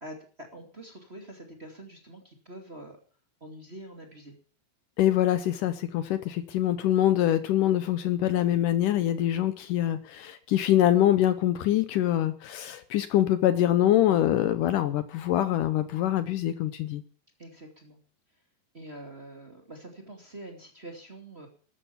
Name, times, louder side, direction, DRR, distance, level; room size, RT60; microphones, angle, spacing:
voice 1, 0.0-3.0 3.4-4.3 17.4-18.0 18.7-21.5, right 1 dB, 20° right, 3 dB, 2.2 m, -45 dB
voice 2, 5.0-17.0, left 12 dB, 70° left, 12 dB, 2.3 m, -24 dB
13.5 x 13.0 x 7.0 m, 0.41 s
omnidirectional pair, 4.2 m